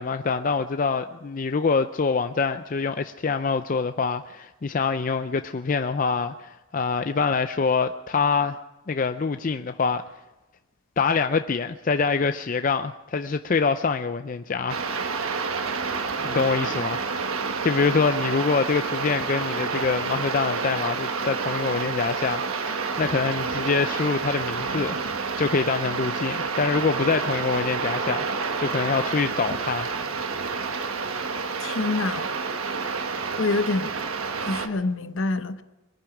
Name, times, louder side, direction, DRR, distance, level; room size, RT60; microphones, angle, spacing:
voice 1, 0.0-8.6 8.9-10.0 11.0-14.8 16.2-17.1 17.6-29.9, left 4 dB, 40° left, 0.4 m, -25 dB
sound 1, 14.7-34.7, right 4 dB, 90° right, 1.2 m, -29 dB
voice 2, 31.6-32.3 33.4-33.9 34.5-35.6, left 3 dB, 65° left, 0.9 m, -26 dB
22.5 x 9.9 x 6.0 m
head